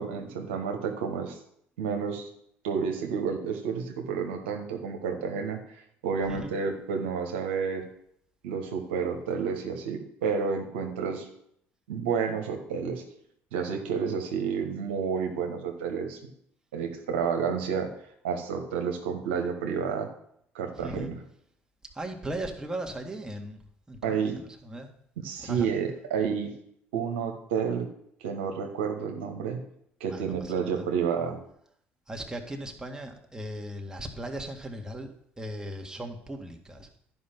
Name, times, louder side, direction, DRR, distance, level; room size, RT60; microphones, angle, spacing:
voice 1, 0.0-1.4 1.8-2.3 2.6-5.6 6.0-7.9 8.4-11.3 11.9-13.0 13.5-16.2 16.7-17.9 18.2-20.1 20.5-21.2 24.0-24.4 25.2-26.5 26.9-27.9 28.2-29.6 30.0-31.4, right 6 dB, 80° right, 3 dB, 1.2 m, -30 dB
voice 2, 20.8-21.1 21.9-23.6 23.9-24.3 24.7-24.9 25.4-25.7 30.1-30.8 32.1-36.9, right 1 dB, 10° right, 2 dB, 1.9 m, -38 dB
11.5 x 5.4 x 5.9 m, 0.70 s
hypercardioid pair, 60°, 6 cm